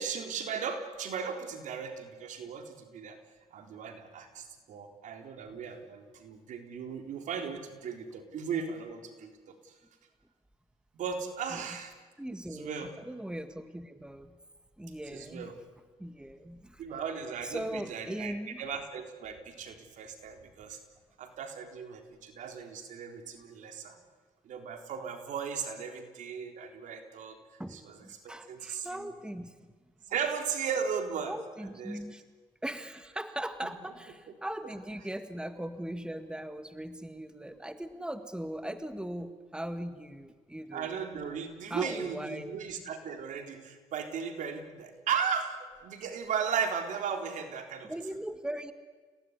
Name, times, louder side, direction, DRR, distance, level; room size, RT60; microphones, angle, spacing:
voice 1, 0.0-3.2 3.5-9.7 10.9-11.9 12.5-12.9 15.1-15.5 16.8-20.8 21.2-24.0 24.4-27.4 27.7-28.0 28.5-29.1 30.1-31.4 31.6-32.0 40.7-47.9, right 6 dB, 70° right, 6 dB, 3.8 m, -36 dB
voice 2, 12.2-14.3 14.8-15.5 16.0-16.8 17.4-18.7 27.6-29.6 31.3-32.2 32.6-40.9 41.7-42.6 47.9-48.7, right 1 dB, 5° right, 10 dB, 1.9 m, -39 dB
29.0 x 18.0 x 9.9 m, 1.4 s
supercardioid pair, 65°, 13 cm